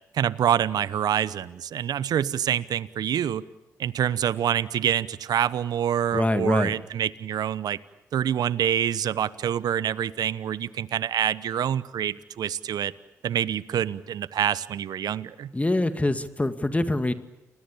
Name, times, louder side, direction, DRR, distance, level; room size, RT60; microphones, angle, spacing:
voice 1, 0.1-3.4 3.8-7.8 8.1-12.9 13.2-15.5, right 10 dB, 65° right, 18 dB, 1.0 m, -26 dB
voice 2, 6.1-6.7 15.5-17.1, left 2 dB, 20° left, 11 dB, 2.1 m, -24 dB
29.5 x 22.0 x 8.7 m, 0.95 s
hypercardioid pair, 45°, 7 cm